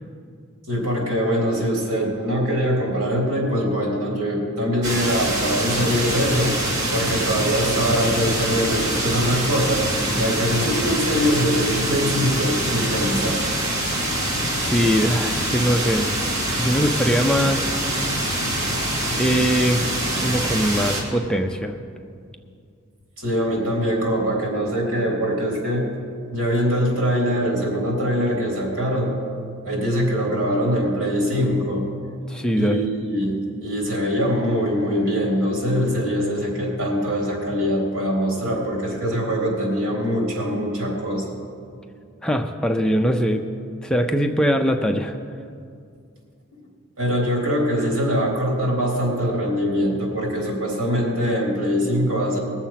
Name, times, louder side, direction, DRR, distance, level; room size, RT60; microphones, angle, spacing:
voice 1, 0.7-6.6 6.9-9.9 10.2-13.4 23.2-25.9 26.3-29.1 29.6-31.9 32.5-41.2 47.0-52.4, equal, 80° right, -1 dB, 3.6 m, -23 dB
sound 1, 4.8-21.0, right 1 dB, 55° right, 2.4 m, -24 dB
voice 2, 14.6-16.1 16.5-17.7 19.1-19.9 20.2-21.7 32.3-32.8 42.2-43.4 43.8-45.2, equal, 5° left, 4 dB, 0.4 m, -21 dB
20.0 x 7.1 x 5.8 m, 2.3 s
head